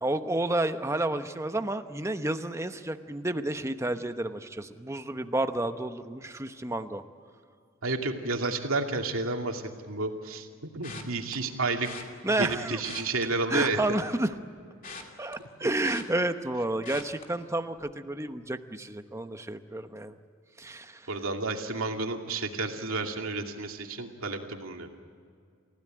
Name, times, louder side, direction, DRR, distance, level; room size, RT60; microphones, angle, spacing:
voice 1, 0.0-7.0 12.2-12.8 13.5-14.3 15.2-20.2 20.6-21.1, right 1 dB, 15° right, 8 dB, 1.0 m, -30 dB
voice 2, 7.8-10.5 10.7-11.9 12.4-13.8 21.1-24.9, right 3 dB, 80° right, 3 dB, 2.5 m, -31 dB
sound 1, 10.8-11.3 11.8-12.0 12.7-14.0 14.3-16.5 16.8-17.2 17.7-18.0 18.3-18.4, left 4 dB, 40° left, 2.8 m, -44 dB
29.5 x 16.0 x 8.9 m, 2.2 s
head